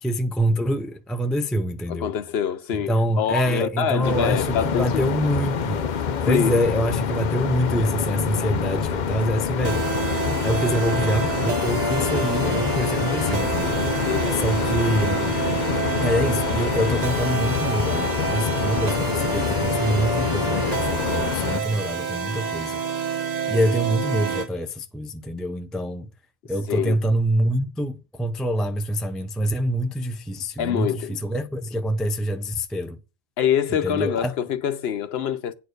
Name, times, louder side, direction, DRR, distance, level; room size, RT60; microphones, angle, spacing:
voice 1, 0.0-2.1 2.9-5.8 6.3-9.9 10.4-13.8 14.3-15.4 16.0-22.8 23.5-26.1 26.5-33.0 33.8-34.3, equal, ahead, 0.4 m, -25 dB
voice 2, 1.9-5.0 6.3-6.6 14.0-14.4 26.7-27.0 30.6-31.2 33.4-35.5, left 8 dB, 75° left, 1.0 m, -25 dB
sound 1, 4.0-21.6, left 7 dB, 50° left, 0.7 m, -26 dB
sound 2, 9.6-24.5, right 5 dB, 45° right, 0.9 m, -28 dB
9.3 x 4.4 x 6.4 m
omnidirectional pair, 1.1 m